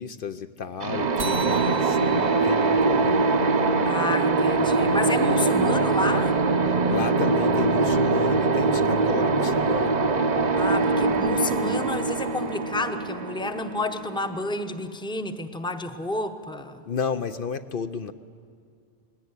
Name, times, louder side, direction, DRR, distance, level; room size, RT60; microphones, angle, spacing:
voice 1, 0.0-3.3 6.9-9.9 16.9-18.1, left 6 dB, 65° left, 9 dB, 0.8 m, -32 dB
sound 1, 0.8-14.5, right 3 dB, 45° right, 0.9 m, -23 dB
sound 2, 1.2-6.1, right 7 dB, 70° right, 1.4 m, -38 dB
voice 2, 3.8-6.4 10.6-16.8, left 2 dB, 5° left, 8 dB, 0.8 m, -30 dB
20.0 x 17.5 x 9.7 m, 2.3 s
omnidirectional pair, 1.0 m